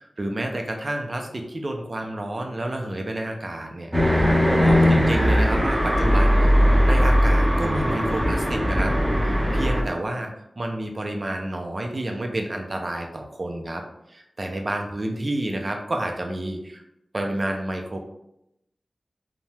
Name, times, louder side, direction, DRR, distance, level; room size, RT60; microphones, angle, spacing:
voice 1, 0.0-6.6 6.8-8.9 9.2-16.8 17.1-18.0, right 1 dB, 45° right, 3 dB, 0.5 m, -30 dB
sound 1, 3.9-9.8, equal, 15° right, 0.7 m, -19 dB
2.7 x 2.1 x 3.3 m, 0.83 s
wide cardioid pair, 55°, 0 cm